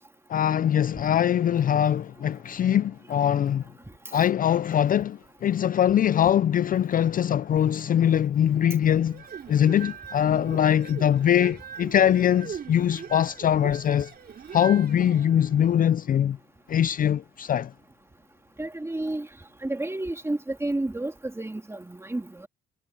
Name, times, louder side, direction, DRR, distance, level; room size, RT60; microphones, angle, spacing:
voice 1, 0.3-3.6 4.1-9.2 9.5-14.1 14.5-16.4 16.7-17.7, left 10 dB, 45° left, 0.4 m, -22 dB
sound 1, 9.0-15.8, right 7 dB, 50° right, 3.7 m, -41 dB
voice 2, 18.6-19.3 19.6-22.5, right 2 dB, 15° right, 2.5 m, -31 dB
cardioid pair, 90°, 20 cm